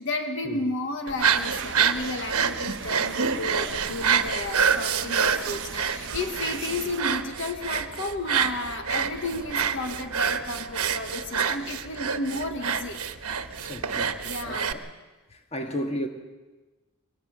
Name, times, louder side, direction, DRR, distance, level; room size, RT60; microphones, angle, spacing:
voice 1, 0.0-13.0 14.2-14.7, left 2 dB, 60° left, 1.3 m, -32 dB
sound 1, 1.1-14.7, right 6 dB, 85° right, 1.1 m, -27 dB
sound 2, 1.2-7.0, right 6 dB, 55° right, 0.8 m, -38 dB
voice 2, 13.6-14.9 15.3-16.1, equal, 30° left, 1.8 m, -34 dB
22.0 x 19.0 x 6.6 m
head